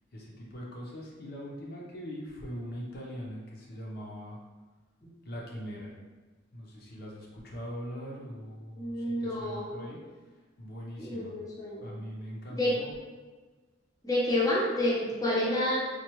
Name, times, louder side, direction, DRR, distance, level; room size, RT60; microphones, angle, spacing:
voice 1, 0.1-4.4 5.2-5.9 6.5-10.0 10.6-11.3 11.8-12.9, equal, 55° left, -3 dB, 0.7 m, -41 dB
voice 2, 8.8-9.8 11.0-11.9 12.5-12.8 14.0-15.8, left 1 dB, 20° left, -5 dB, 0.7 m, -29 dB
4.3 x 2.3 x 3.0 m, 1.3 s
head